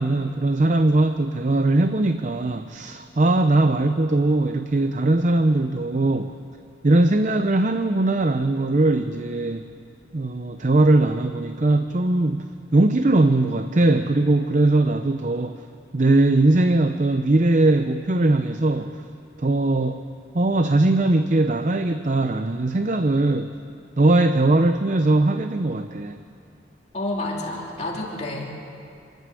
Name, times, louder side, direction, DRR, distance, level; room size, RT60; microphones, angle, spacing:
voice 1, 0.0-6.3 6.8-9.6 10.1-15.6 15.9-19.0 19.4-20.0 20.3-23.5 24.0-26.2, right 2 dB, 40° right, 8 dB, 0.6 m, -20 dB
voice 2, 26.9-28.5, left 2 dB, 35° left, -2 dB, 3.1 m, -29 dB
27.5 x 12.0 x 8.4 m, 2.5 s
head